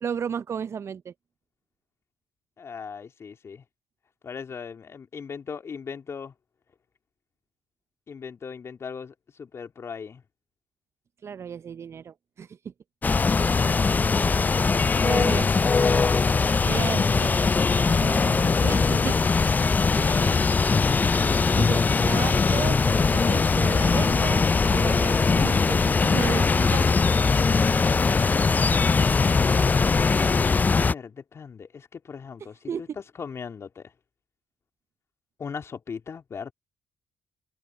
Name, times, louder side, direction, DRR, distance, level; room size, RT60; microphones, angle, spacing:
voice 1, 0.0-1.1 11.2-12.7 15.0-15.5 16.6-17.4 17.8-19.2 20.0-20.6 21.6-24.4 24.7-26.9 32.7-32.8, right 7 dB, 50° right, 0.5 m, -34 dB
voice 2, 2.6-3.6 4.2-6.3 8.1-10.2 14.9-15.1 20.0-20.5 29.6-32.9 33.1-33.9 35.4-36.5, left 6 dB, 50° left, 3.0 m, -39 dB
sound 1, 13.0-30.9, left 4 dB, 30° left, 0.4 m, -21 dB
hypercardioid pair, 50°, 6 cm